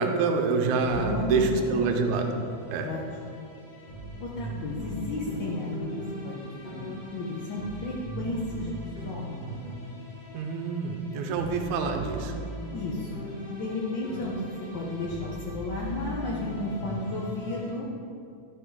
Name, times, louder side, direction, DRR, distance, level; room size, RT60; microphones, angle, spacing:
voice 1, 0.0-2.3 2.7-2.9 10.3-12.3, right 4 dB, 80° right, 3 dB, 2.2 m, -26 dB
sound 1, 0.8-17.7, equal, 20° left, 1.2 m, -39 dB
voice 2, 0.9-1.9 2.8-3.4 4.2-8.7 9.0-9.4 12.7-14.3 14.7-17.9, left 2 dB, 60° left, -4 dB, 1.2 m, -33 dB
13.0 x 5.6 x 4.8 m, 2.4 s
omnidirectional pair, 3.4 m